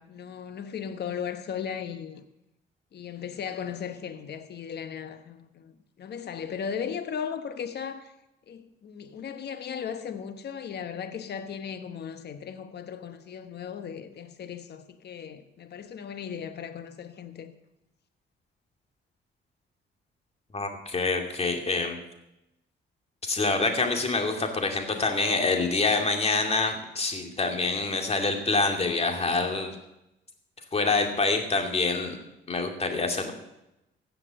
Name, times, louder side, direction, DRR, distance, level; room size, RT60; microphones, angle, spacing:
voice 1, 0.0-2.2 2.9-8.1 8.5-17.5, left 7 dB, 55° left, 1.1 m, -37 dB
voice 2, 20.5-22.0 23.2-29.7 30.7-32.2 32.5-33.3, left 3 dB, 30° left, 2.4 m, -26 dB
16.0 x 5.9 x 7.8 m
cardioid pair, 90°, 20 cm